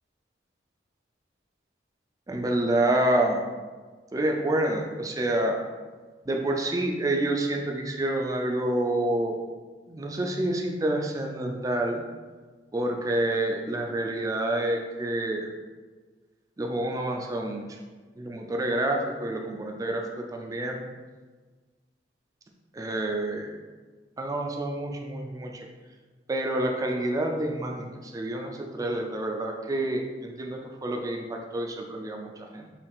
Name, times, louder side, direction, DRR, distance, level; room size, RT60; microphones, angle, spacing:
voice 1, 2.3-3.4 4.1-5.6 6.3-9.4 9.9-12.0 12.7-15.5 16.6-17.8 18.2-20.8 22.7-23.5 24.2-25.7 26.3-32.7, right 1 dB, 20° right, 2 dB, 0.3 m, -28 dB
5.5 x 2.4 x 3.4 m, 1.4 s
head